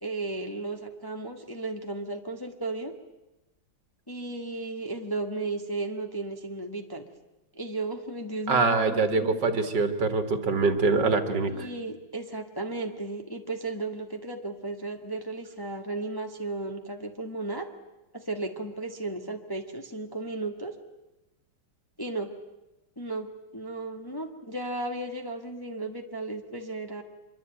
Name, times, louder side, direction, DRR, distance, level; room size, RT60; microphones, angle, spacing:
voice 1, 0.0-2.9 4.1-7.0 7.5-9.4 11.5-17.7 18.1-20.7 22.0-22.3 23.0-23.3 23.5-27.0, right 2 dB, 10° left, 3 dB, 1.4 m, -34 dB
voice 2, 8.5-11.7, right 3 dB, 60° right, 8 dB, 2.3 m, -24 dB
25.5 x 23.0 x 9.0 m, 1.0 s
omnidirectional pair, 2.2 m